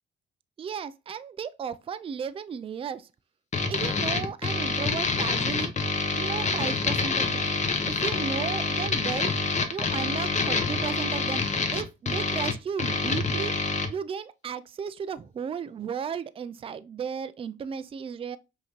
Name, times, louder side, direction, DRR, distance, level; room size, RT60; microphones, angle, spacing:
voice 1, 0.6-3.1 3.7-5.7 6.2-7.5 7.8-9.3 9.7-11.4 11.7-13.5 13.9-18.4, right 7 dB, 30° right, 0.4 m, -34 dB
sound 1, 3.5-13.9, left 4 dB, 35° left, 0.9 m, -27 dB
5.6 x 2.8 x 3.0 m
cardioid pair, 90°, 20 cm